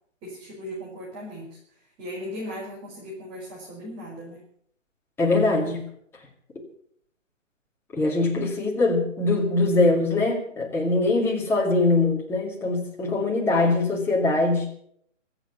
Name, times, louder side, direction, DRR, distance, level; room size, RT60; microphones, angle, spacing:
voice 1, 0.2-4.4 8.2-8.3, equal, 20° right, -5 dB, 5.6 m, -38 dB
voice 2, 5.2-5.9 7.9-14.8, left 2 dB, 5° left, -1 dB, 2.2 m, -22 dB
26.0 x 9.0 x 5.8 m, 0.64 s
hypercardioid pair, 150°, 39 cm